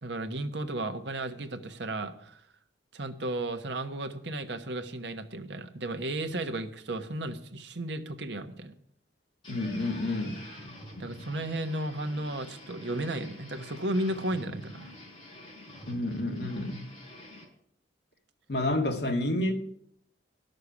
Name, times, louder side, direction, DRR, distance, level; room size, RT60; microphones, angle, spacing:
voice 1, 0.0-2.4 2.9-8.8 11.0-14.9, right 1 dB, 75° right, 1.2 m, -34 dB
sound 1, 9.4-17.4, left 1 dB, 25° left, 5.2 m, -47 dB
voice 2, 9.5-10.4 15.9-16.8 18.5-19.5, left 1 dB, 60° left, 1.8 m, -29 dB
11.5 x 6.6 x 9.6 m
head